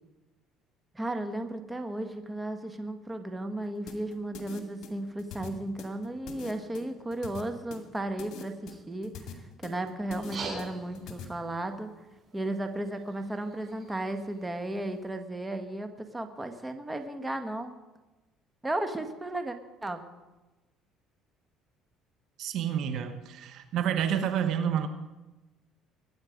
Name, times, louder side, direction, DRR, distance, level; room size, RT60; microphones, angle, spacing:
voice 1, 0.9-9.2 9.6-11.9 12.3-17.7 18.6-19.6 19.8-20.0, right 1 dB, 15° right, 7 dB, 1.6 m, -34 dB
sound 1, 3.9-11.2, left 6 dB, 65° left, 2.2 m, -44 dB
sound 2, 10.1-15.1, right 3 dB, 40° right, 6.0 m, -45 dB
voice 2, 22.4-24.9, right 9 dB, 65° right, 9 dB, 1.2 m, -29 dB
21.5 x 9.5 x 5.2 m, 1.1 s
supercardioid pair, 90°, 0 cm